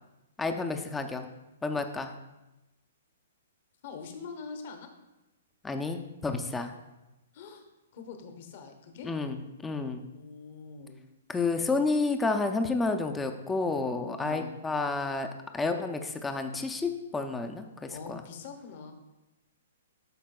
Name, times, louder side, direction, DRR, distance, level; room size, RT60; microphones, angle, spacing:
voice 1, 0.4-1.3 1.6-2.1 5.6-6.7 9.0-10.0 11.3-15.3 15.5-18.2, left 3 dB, 10° left, 6 dB, 0.4 m, -30 dB
voice 2, 3.8-4.9 7.3-7.7 7.9-9.1 10.1-11.0 14.2-14.5 17.9-18.9, left 5 dB, 50° left, 5 dB, 0.9 m, -43 dB
11.5 x 4.6 x 2.3 m, 1.0 s
hypercardioid pair, 155°, 0 cm